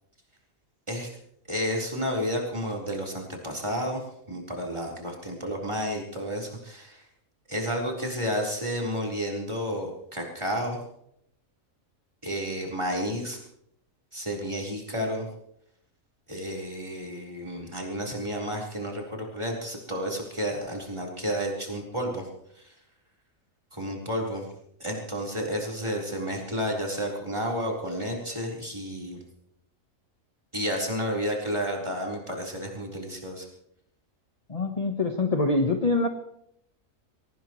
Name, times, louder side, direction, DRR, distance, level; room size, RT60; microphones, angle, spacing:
voice 1, 1.5-7.0 7.5-10.8 12.2-13.4 14.1-15.3 16.3-22.3 22.5-22.7 23.7-24.5 24.8-29.2 30.5-33.5, equal, 20° right, -1 dB, 4.3 m, -31 dB
voice 2, 34.5-36.1, left 2 dB, 30° left, 4 dB, 1.2 m, -24 dB
23.5 x 18.0 x 3.1 m, 0.74 s
omnidirectional pair, 1.4 m